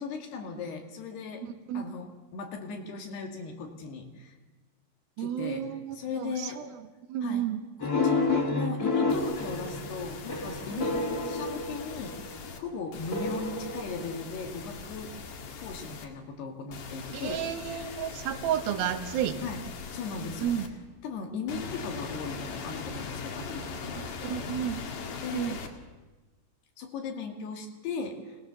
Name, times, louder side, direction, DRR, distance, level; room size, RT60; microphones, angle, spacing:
voice 1, 0.0-1.5 1.7-4.3 5.2-5.7 5.9-6.6 7.2-7.5 7.8-15.1 15.6-18.0 19.4-19.6 19.9-20.5 21.0-24.6 25.2-25.6 26.8-28.4, left 5 dB, 80° left, 2 dB, 4.2 m, -38 dB
voice 2, 1.4-1.8 5.2-6.7 7.1-7.6 10.8-10.9 17.1-19.4 20.4-20.7 24.0-24.8 25.3-25.6, right 10 dB, 70° right, 8 dB, 3.1 m, -32 dB
sound 1, 7.8-12.4 13.1-14.7, left 3 dB, 25° left, 2.5 m, -30 dB
sound 2, 9.1-12.6 12.9-16.1 16.7-20.7 21.5-25.7, left 5 dB, 60° left, 3.3 m, -41 dB
27.5 x 18.5 x 7.0 m, 1.2 s
omnidirectional pair, 4.6 m